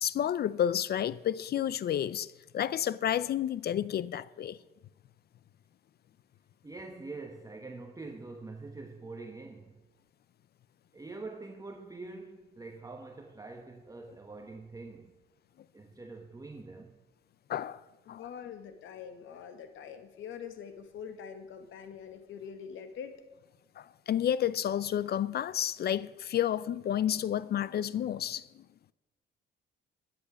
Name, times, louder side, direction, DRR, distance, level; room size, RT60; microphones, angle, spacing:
voice 1, 0.0-4.6 17.5-17.8 18.1-18.3 23.8-28.6, left 10 dB, 55° left, 0.5 m, -31 dB
voice 2, 6.6-9.8 10.9-15.2 15.7-17.0, right 3 dB, 15° right, 1.1 m, -45 dB
voice 3, 18.1-23.2, left 7 dB, 80° left, 1.5 m, -44 dB
11.5 x 7.8 x 7.2 m
cardioid pair, 90°, 20 cm